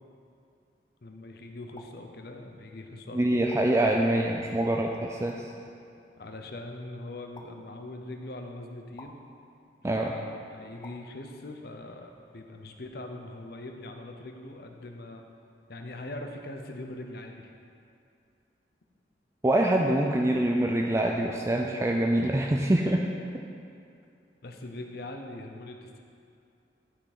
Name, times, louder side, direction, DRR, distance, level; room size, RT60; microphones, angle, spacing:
voice 1, 1.0-3.5 6.2-9.2 9.8-15.2 15.7-17.5 24.4-26.0, left 2 dB, 60° left, 4 dB, 0.8 m, -42 dB
sound 1, 1.7-1.9 3.5-3.6 5.3-5.4 7.3-7.5 8.9-9.1 10.8-11.0, left 3 dB, 25° left, 0.6 m, -47 dB
voice 2, 3.1-5.5 9.8-10.1 19.4-23.0, right 1 dB, 15° right, 1 dB, 0.4 m, -25 dB
11.5 x 5.9 x 4.2 m, 2.5 s
head